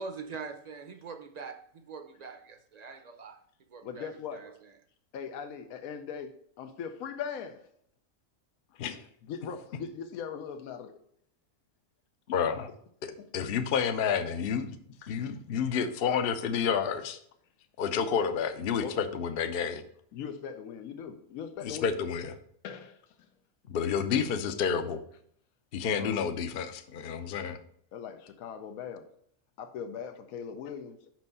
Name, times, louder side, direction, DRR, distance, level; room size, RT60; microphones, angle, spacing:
voice 1, 0.0-3.4 3.7-4.5, right 4 dB, 40° right, 0.7 m, -43 dB
voice 2, 3.8-4.6 5.1-7.7 8.8-10.9 13.2-13.3 15.0-15.4 15.6-15.8 18.8-19.0 20.1-21.9 22.6-23.2 25.9-26.2 27.9-29.1 29.6-31.0, left 7 dB, 85° left, 1.1 m, -40 dB
voice 3, 12.3-12.7 13.0-14.7 15.1-17.2 17.8-19.8 21.6-22.3 23.7-25.0 25.7-27.6, left 7 dB, 55° left, 0.7 m, -30 dB
6.1 x 5.3 x 5.4 m
omnidirectional pair, 1.4 m